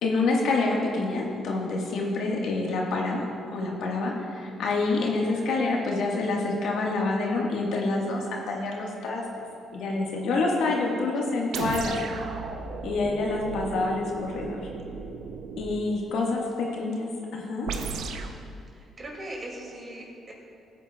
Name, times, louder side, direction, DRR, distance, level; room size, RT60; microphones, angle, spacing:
voice 1, 0.0-3.3 3.5-9.4 9.7-12.0 12.8-14.6 15.6-17.7, left 3 dB, 80° left, -2 dB, 1.5 m, -27 dB
voice 2, 10.8-11.5 18.7-20.3, right 1 dB, 40° right, -2 dB, 2.4 m, -41 dB
sound 1, 11.5-15.8 17.7-18.4, right 5 dB, 80° right, 0.6 m, -35 dB
14.5 x 8.8 x 2.3 m, 2.5 s
cardioid pair, 90°, 0 cm